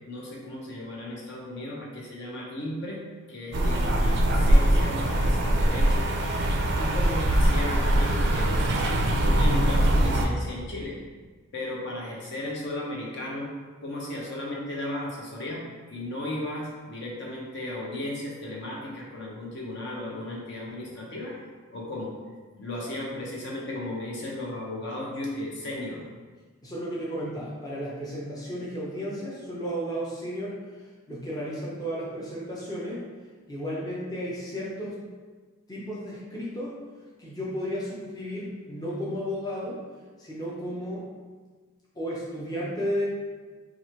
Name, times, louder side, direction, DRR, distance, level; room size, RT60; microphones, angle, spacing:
voice 1, 0.1-3.0 3.3-6.1 6.8-8.6 9.0-11.0 11.5-13.5 13.8-15.6 15.9-21.4 21.7-22.1 22.6-26.0, left 1 dB, 55° left, -3 dB, 0.6 m, -35 dB
sound 1, 3.5-10.3, right 1 dB, 50° right, 0.4 m, -22 dB
voice 2, 26.6-30.6 31.1-33.0 33.5-35.0 35.7-36.8 37.2-39.8 40.2-41.1 42.0-43.0, equal, 15° left, -7 dB, 0.6 m, -33 dB
3.0 x 2.4 x 4.3 m, 1.4 s
head